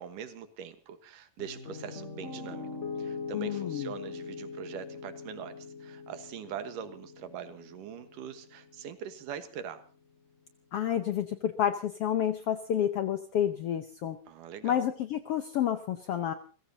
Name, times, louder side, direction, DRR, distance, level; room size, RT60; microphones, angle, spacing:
voice 1, 0.0-2.7 3.0-9.8 14.3-14.8, right 8 dB, 80° right, 9 dB, 2.9 m, -42 dB
Piano, 1.4-9.5, left 4 dB, 25° left, 1.8 m, -42 dB
voice 2, 3.3-3.9 10.7-14.2 14.6-16.3, left 10 dB, 75° left, 9 dB, 1.4 m, -29 dB
29.0 x 15.5 x 2.8 m, 0.37 s
omnidirectional pair, 3.7 m